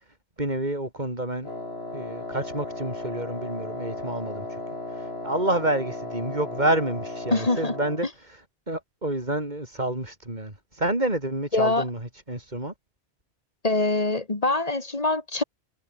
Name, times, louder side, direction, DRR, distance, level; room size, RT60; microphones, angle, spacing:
voice 1, 0.4-1.5 1.9-4.6 4.9-8.4 8.7-12.7, right 1 dB, 45° right, 5.2 m, -29 dB
Wind instrument woodwind instrument, 1.4-8.1, left 2 dB, 70° left, 5.0 m, -35 dB
voice 2, 7.3-7.7 11.5-11.8 13.6-15.4, left 2 dB, 35° left, 2.1 m, -24 dB
omnidirectional pair, 1.1 m